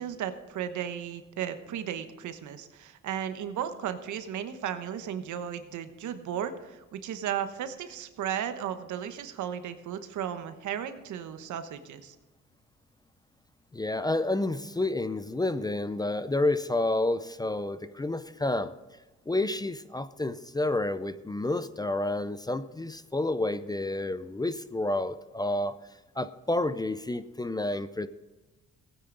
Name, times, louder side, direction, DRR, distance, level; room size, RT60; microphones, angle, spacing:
voice 1, 0.0-12.1, right 9 dB, 75° right, 10 dB, 1.1 m, -35 dB
voice 2, 13.7-18.7 19.3-25.7 26.2-28.1, left 2 dB, 15° left, 13 dB, 0.5 m, -29 dB
16.5 x 9.3 x 3.9 m, 1.1 s
cardioid pair, 90°, 30 cm